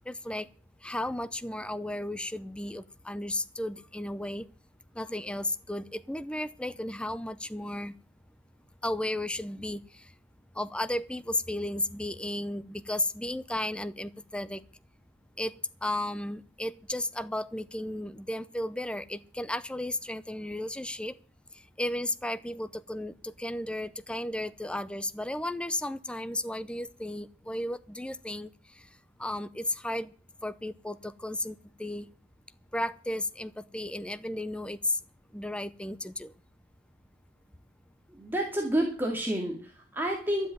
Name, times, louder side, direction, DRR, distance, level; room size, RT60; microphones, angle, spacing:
voice 1, 0.1-0.5 0.8-4.5 4.9-7.9 8.8-10.1 10.5-14.6 15.4-21.1 21.5-28.9 29.2-30.1 30.4-32.1 32.7-35.0 35.3-36.3, left 1 dB, 5° left, 0.6 m, -34 dB
voice 2, 38.1-40.5, right 1 dB, 10° right, 2.3 m, -30 dB
12.5 x 7.9 x 9.3 m
head